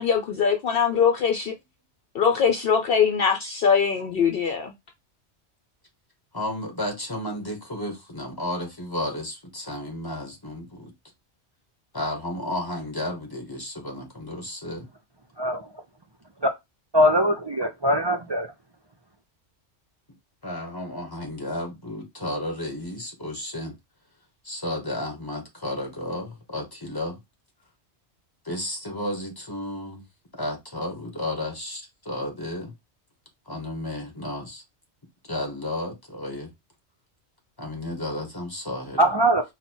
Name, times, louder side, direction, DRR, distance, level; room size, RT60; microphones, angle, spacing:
voice 1, 0.0-1.5 2.1-4.7, left 7 dB, 60° left, 0.7 m, -22 dB
voice 2, 6.3-10.9 11.9-14.9 20.4-23.7 24.4-27.2 28.4-30.0 30.3-32.7 33.5-34.6 35.3-36.5 37.6-39.1, left 1 dB, 20° left, 1.2 m, -32 dB
voice 3, 15.4-15.7 16.9-18.5 39.0-39.4, equal, 45° right, 0.3 m, -21 dB
4.1 x 2.2 x 4.3 m
omnidirectional pair, 1.2 m